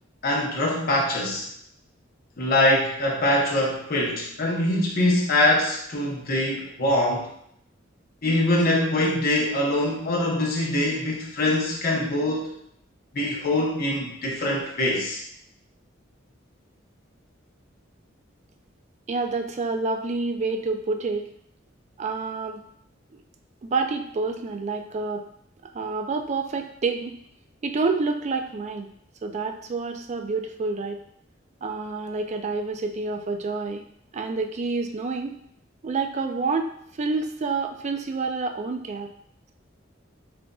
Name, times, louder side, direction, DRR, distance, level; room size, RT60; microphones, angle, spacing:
voice 1, 0.2-1.5 2.4-7.3 8.2-12.6 13.1-15.2, left 1 dB, 50° left, -3 dB, 0.8 m, -23 dB
voice 2, 19.1-21.3 22.0-22.6 23.6-25.2 25.7-27.2 27.6-28.9 29.2-31.0 31.6-33.8 34.1-35.4 35.8-36.7 37.0-39.1, right 3 dB, 35° right, 5 dB, 0.4 m, -28 dB
7.5 x 2.5 x 2.3 m, 0.69 s
head